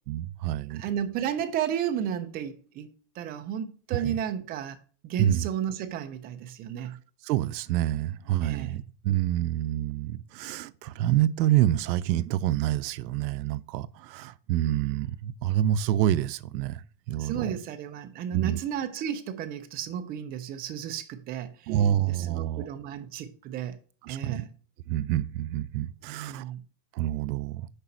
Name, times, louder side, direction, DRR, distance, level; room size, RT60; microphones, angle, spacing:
voice 1, 0.1-0.8 4.0-4.1 5.2-5.5 6.9-7.0 7.2-17.5 18.3-18.6 21.7-22.7 24.0-24.4 24.9-26.5 26.9-27.7, right 12 dB, 80° right, 0.7 m, -27 dB
voice 2, 0.7-2.9 3.2-4.8 5.0-7.0 8.4-8.8 17.2-21.7 22.1-23.8 24.1-24.5 26.1-26.6, right 9 dB, 20° right, 0.3 m, -33 dB
6.8 x 5.1 x 4.3 m
supercardioid pair, 135°, 50 cm